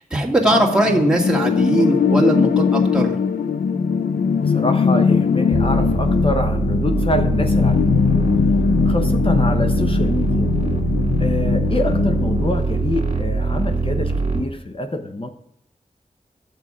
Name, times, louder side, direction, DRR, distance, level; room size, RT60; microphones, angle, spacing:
voice 1, 0.1-3.1, right 1 dB, 5° right, -3 dB, 2.1 m, -19 dB
sound 1, 0.5-12.5, left 6 dB, 85° left, 0.4 m, -20 dB
voice 2, 4.3-10.5 11.2-15.3, left 1 dB, 40° left, 6 dB, 0.9 m, -26 dB
sound 2, 5.5-14.4, right 3 dB, 50° right, 2.2 m, -22 dB
9.6 x 7.1 x 4.9 m, 0.74 s
cardioid pair, 45°, 15 cm